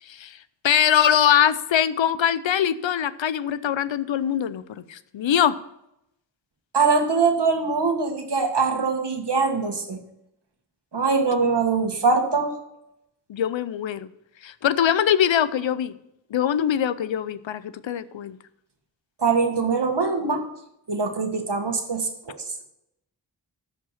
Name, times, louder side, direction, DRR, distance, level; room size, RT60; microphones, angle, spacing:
voice 1, 0.1-0.4 0.6-4.6 4.9-5.6 13.3-14.1 14.4-15.9 16.3-18.4, left 9 dB, 90° left, 15 dB, 0.6 m, -22 dB
voice 2, 6.7-10.0 10.9-12.5 19.2-20.4 20.9-22.3, right 4 dB, 65° right, 4 dB, 1.7 m, -22 dB
12.5 x 5.2 x 5.7 m, 0.83 s
cardioid pair, 40°, 44 cm